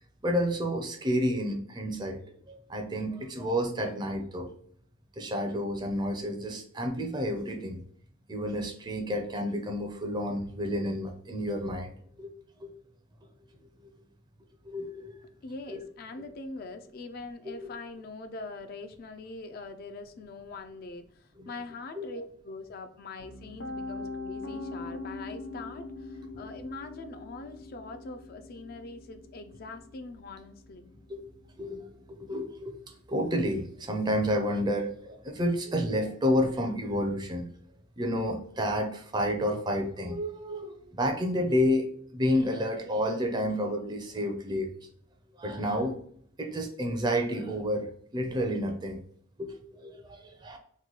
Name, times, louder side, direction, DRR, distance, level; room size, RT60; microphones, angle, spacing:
voice 1, 0.2-4.5 5.2-7.8 8.3-12.3 12.6-12.7 13.8-13.9 14.6-15.1 15.7-15.9 17.4-17.7 21.4-21.5 21.9-22.1 31.1-31.2 31.6-37.5 38.0-44.7 45.4-46.0 46.4-49.0 49.4-50.6, equal, 20° right, 4 dB, 0.5 m, -30 dB
voice 2, 15.2-30.9, left 3 dB, 50° left, 8 dB, 0.3 m, -43 dB
Piano, 23.2-35.1, left 3 dB, 80° left, 0.7 m, -44 dB
3.0 x 2.2 x 3.9 m, 0.64 s
head